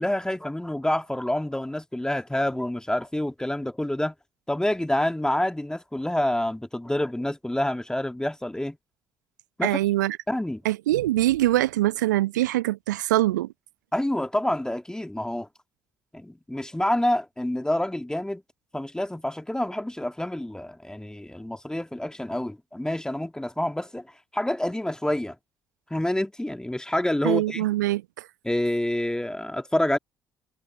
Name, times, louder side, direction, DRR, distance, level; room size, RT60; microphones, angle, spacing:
voice 1, 0.0-4.1 4.5-8.8 9.6-9.8 10.3-10.6 13.9-15.5 16.1-18.4 18.7-24.1 24.3-25.4 25.9-27.7 28.4-30.0, left 1 dB, 5° left, 2.2 m, -27 dB
voice 2, 9.6-10.2 10.6-13.5 27.2-28.3, right 16 dB, 75° right, 1.0 m, -23 dB
figure-of-eight pair, 45°, 10 cm